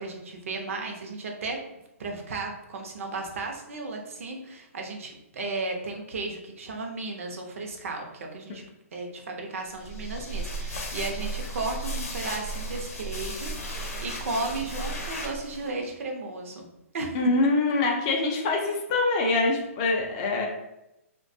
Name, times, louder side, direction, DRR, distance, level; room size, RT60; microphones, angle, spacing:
voice 1, 0.0-1.6 2.0-8.6 8.9-16.7 16.9-17.2, right 3 dB, 65° right, 2 dB, 0.6 m, -34 dB
sound 1, 9.8-15.7, right 1 dB, 75° left, 0.6 m, -34 dB
voice 2, 17.1-20.5, left 3 dB, 25° left, 1 dB, 0.4 m, -24 dB
2.5 x 2.2 x 2.6 m, 0.90 s
hypercardioid pair, 155°, 8 cm